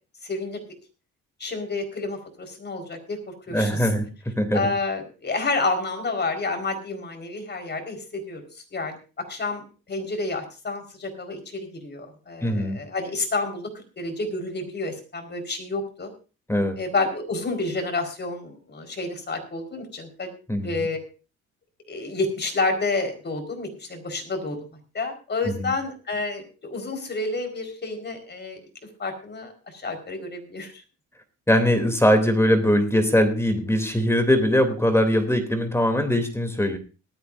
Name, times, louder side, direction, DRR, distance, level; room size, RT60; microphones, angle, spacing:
voice 1, 0.2-0.6 1.4-3.2 3.5-3.9 4.5-9.0 9.3-16.1 16.8-20.3 20.6-21.0 21.9-24.6 24.9-28.6 29.0-30.8, left 3 dB, 35° left, 5 dB, 4.8 m, -29 dB
voice 2, 3.5-4.6 12.4-12.8 16.5-16.8 20.5-20.8 25.6-25.7 31.5-36.8, equal, 10° left, 7 dB, 3.0 m, -21 dB
18.5 x 13.5 x 2.7 m, 0.33 s
cardioid pair, 90°, 30 cm